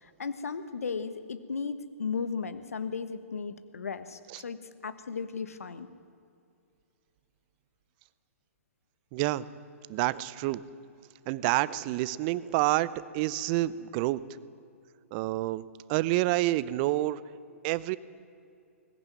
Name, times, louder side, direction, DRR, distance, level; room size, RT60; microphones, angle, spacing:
voice 1, 0.0-4.6 4.8-5.9, left 5 dB, 80° left, 12 dB, 1.3 m, -35 dB
voice 2, 9.1-9.5 9.9-10.6 11.3-14.2 15.1-17.2 17.6-18.0, right 17 dB, 40° right, 18 dB, 0.8 m, -28 dB
20.0 x 15.0 x 9.6 m, 2.5 s
hypercardioid pair, 125°, 8 cm